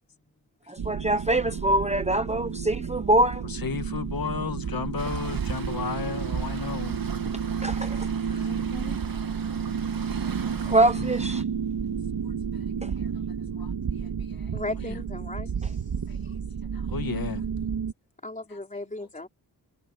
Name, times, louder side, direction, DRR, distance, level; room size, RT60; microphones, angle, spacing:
voice 1, 0.7-3.5 7.6-8.1 10.4-11.4 12.8-12.9, right 1 dB, 15° right, 0.9 m, -24 dB
sound 1, 0.8-17.9, right 7 dB, 75° right, 2.2 m, -31 dB
voice 2, 3.4-7.0 8.3-8.6 10.6-11.1 12.2-13.1 13.6-14.5 14.8-15.0 16.1-17.5 18.5-18.6, left 6 dB, 60° left, 1.7 m, -35 dB
Waves surf, 5.0-11.4, right 6 dB, 60° right, 2.7 m, -43 dB
voice 3, 8.3-9.0 14.5-15.7 18.2-19.3, left 2 dB, 20° left, 3.8 m, -37 dB
wide cardioid pair, 125°, 39 cm